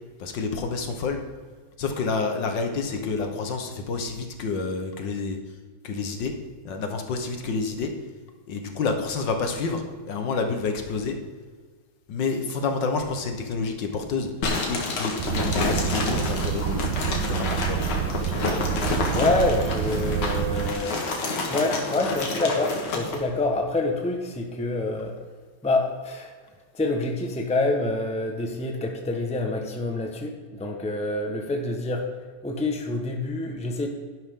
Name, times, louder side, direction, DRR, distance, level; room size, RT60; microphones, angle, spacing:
voice 1, 0.2-1.2 1.8-5.4 5.8-6.3 6.6-7.9 8.5-11.2 12.1-14.3 14.7-16.9 17.3-17.8, left 4 dB, 60° left, 5 dB, 1.7 m, -28 dB
sound 1, 14.4-23.2, left 3 dB, 85° left, 2.5 m, -29 dB
sound 2, 15.2-20.7, right 10 dB, 80° right, 1.5 m, -28 dB
voice 2, 19.1-21.0 21.5-25.2 25.6-26.3 26.7-32.1 32.4-33.9, left 2 dB, 5° left, 3 dB, 0.7 m, -26 dB
11.5 x 11.0 x 3.7 m, 1.5 s
omnidirectional pair, 2.3 m